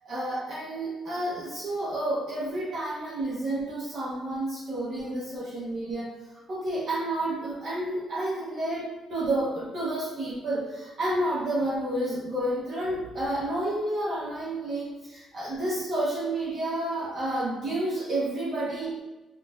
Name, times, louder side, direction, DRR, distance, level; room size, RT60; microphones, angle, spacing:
voice 1, 0.0-19.0, right 1 dB, 55° right, -7 dB, 0.8 m, -30 dB
4.2 x 2.3 x 2.4 m, 1.1 s
cardioid pair, 90°, 0 cm